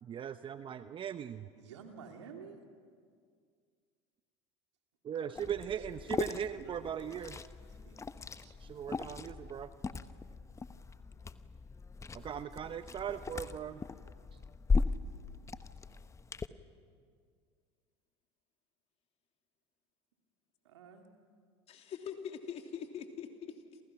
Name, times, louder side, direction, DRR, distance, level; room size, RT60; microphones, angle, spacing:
voice 1, 0.0-1.5 5.0-7.4 8.6-9.7 12.1-13.8, right 8 dB, 35° right, 11 dB, 0.8 m, -39 dB
voice 2, 1.5-2.6 5.2-6.9 7.2-7.3 7.7-8.0 8.4-8.6 13.4-13.9 20.6-21.1, right 6 dB, 85° right, 3 dB, 2.8 m, -53 dB
Liquid, 5.4-16.5, left 4 dB, 20° left, 1.0 m, -38 dB
voice 3, 21.7-23.8, left 7 dB, 45° left, 4 dB, 3.1 m, -43 dB
28.5 x 28.0 x 6.0 m, 2.1 s
hypercardioid pair, 85°, 14 cm